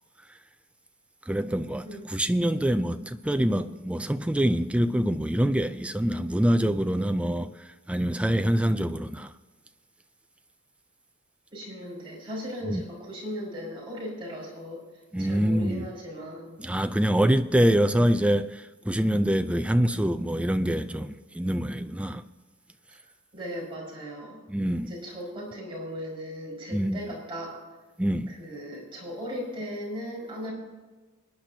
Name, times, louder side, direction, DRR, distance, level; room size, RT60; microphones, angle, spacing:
voice 1, 1.3-7.5 7.9-9.3 12.7-12.8 15.1-15.9 16.6-22.2 24.5-24.9 26.7-27.0 28.0-28.4, equal, 5° right, 0.4 m, -25 dB
voice 2, 11.5-14.8 15.2-16.6 23.3-24.4 24.9-27.6 28.4-30.5, equal, 25° right, 5.2 m, -37 dB
24.5 x 10.0 x 2.8 m
head